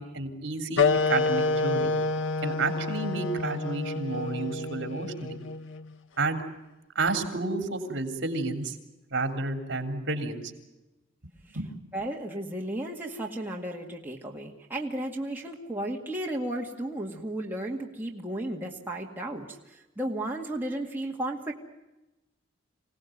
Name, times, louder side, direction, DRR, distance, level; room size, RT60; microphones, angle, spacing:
voice 1, 0.0-2.0 2.4-5.4 6.2-6.4 6.9-8.8 9.1-10.4 11.5-11.7, right 3 dB, 65° right, 6 dB, 3.4 m, -31 dB
sound 1, 0.8-5.9, left 3 dB, 80° left, 0.9 m, -28 dB
voice 2, 11.9-21.5, right 1 dB, 10° right, -1 dB, 2.1 m, -34 dB
26.5 x 18.0 x 9.2 m, 1.0 s
head